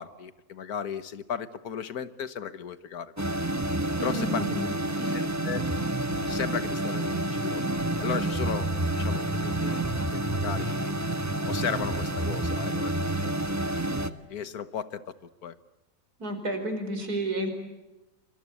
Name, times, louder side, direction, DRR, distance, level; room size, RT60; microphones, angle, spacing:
voice 1, 0.0-3.1 4.0-4.4 5.1-5.7 6.3-7.6 8.0-9.8 10.1-10.9 11.4-15.0 15.4-15.5, left 7 dB, 80° left, 13 dB, 1.7 m, -35 dB
sound 1, 3.2-14.1, right 1 dB, 15° right, 0.9 m, -29 dB
voice 2, 4.0-5.2 16.2-17.5, right 1 dB, 85° right, 6 dB, 5.5 m, -31 dB
26.5 x 25.5 x 8.4 m, 1.0 s
omnidirectional pair, 1.6 m